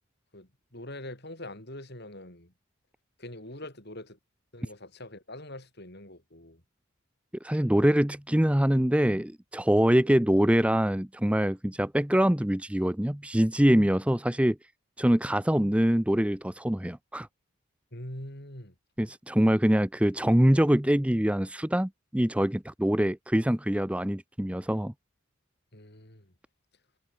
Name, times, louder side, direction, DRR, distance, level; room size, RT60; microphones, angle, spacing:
voice 1, 0.3-2.5 3.2-4.2 4.5-6.6 17.9-18.7 25.7-26.3, left 1 dB, 50° left, 7.6 m, -43 dB
voice 2, 7.4-14.6 15.0-17.3 19.0-24.9, equal, 5° right, 0.6 m, -24 dB
head